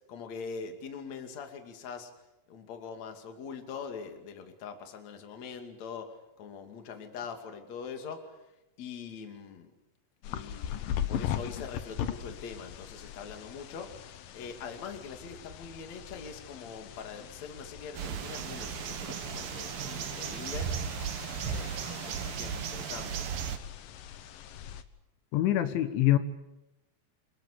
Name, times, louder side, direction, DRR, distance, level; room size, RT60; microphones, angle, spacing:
voice 1, 0.1-2.1 2.5-8.4 8.8-9.7 10.3-14.0 14.3-20.8 21.4-23.3, left 6 dB, 45° left, 5 dB, 3.3 m, -43 dB
sound 1, 10.2-24.8, left 10 dB, 65° left, 2.3 m, -40 dB
sound 2, 17.9-23.6, right 8 dB, 60° right, 2.9 m, -36 dB
voice 2, 25.3-26.2, left 14 dB, 85° left, 10 dB, 3.8 m, -24 dB
27.5 x 23.0 x 8.4 m, 0.93 s
omnidirectional pair, 5.3 m